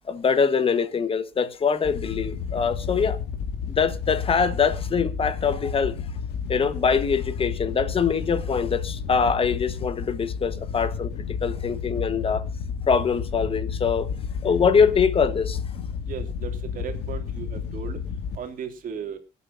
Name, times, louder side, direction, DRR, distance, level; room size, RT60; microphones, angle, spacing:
voice 1, 0.1-3.2 3.7-5.9 6.5-11.1 11.4-12.4 12.9-14.1 14.4-15.6, left 6 dB, 35° left, 1.3 m, -23 dB
Wind / Boat Water vehicle, 1.8-18.4, left 6 dB, 80° left, 2.1 m, -31 dB
voice 2, 16.1-18.0 18.4-19.2, right 7 dB, 55° right, 2.9 m, -36 dB
25.0 x 8.4 x 2.7 m
cardioid pair, 110°, 17 cm